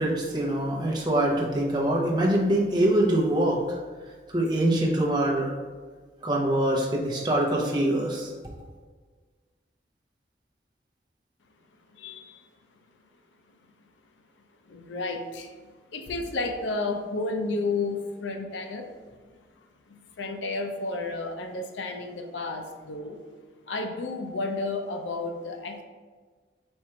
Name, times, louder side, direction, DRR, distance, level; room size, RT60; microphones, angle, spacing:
voice 1, 0.0-3.8 4.3-5.5 6.2-8.3, right 1 dB, 25° right, -3 dB, 0.7 m, -24 dB
voice 2, 11.9-12.4 14.7-15.5 15.9-18.9 19.9-23.2 23.7-25.8, left 3 dB, 85° left, 4 dB, 0.5 m, -32 dB
4.3 x 2.5 x 4.4 m, 1.5 s
head